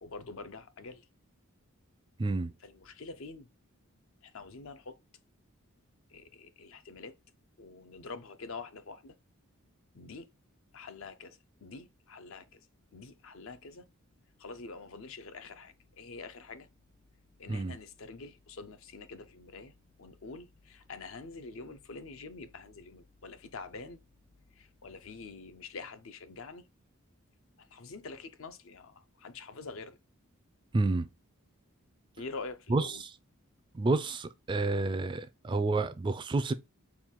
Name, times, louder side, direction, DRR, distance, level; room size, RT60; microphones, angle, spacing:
voice 1, 0.0-1.1 2.6-3.5 4.2-5.0 6.1-7.1 7.6-9.2 9.9-10.3 10.7-12.6 12.9-13.8 14.4-16.7 17.4-19.7 20.0-24.0 24.5-26.6 27.6-30.0 32.2-33.0, left 4 dB, 65° left, 0.6 m, -46 dB
voice 2, 2.2-2.5 17.5-17.8 30.7-31.1 32.7-33.1 33.7-36.5, right 3 dB, 20° right, 0.3 m, -29 dB
4.6 x 2.3 x 3.6 m
head